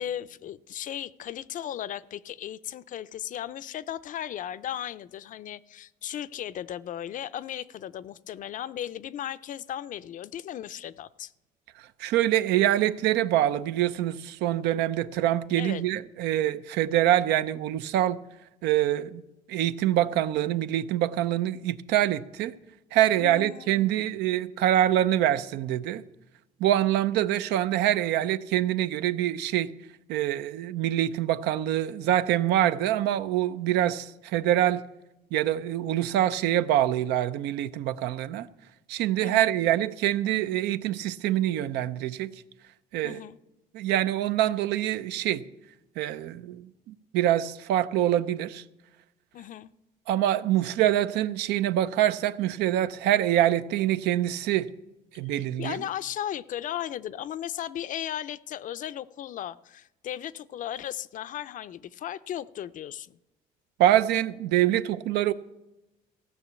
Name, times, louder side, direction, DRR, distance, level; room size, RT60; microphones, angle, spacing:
voice 1, 0.0-11.3 15.6-15.8 23.1-24.3 39.2-39.5 43.0-43.4 49.3-49.7 55.3-63.2, left 11 dB, 50° left, 0.4 m, -36 dB
voice 2, 11.8-18.2 18.6-19.2 19.5-22.5 22.9-26.0 26.6-29.7 30.1-34.8 35.3-38.5 38.9-42.3 42.9-43.2 43.7-45.4 46.0-48.6 50.1-54.7 55.1-55.8 63.8-65.3, right 12 dB, 85° right, 0.6 m, -25 dB
15.0 x 5.8 x 8.2 m
cardioid pair, 110°, 17 cm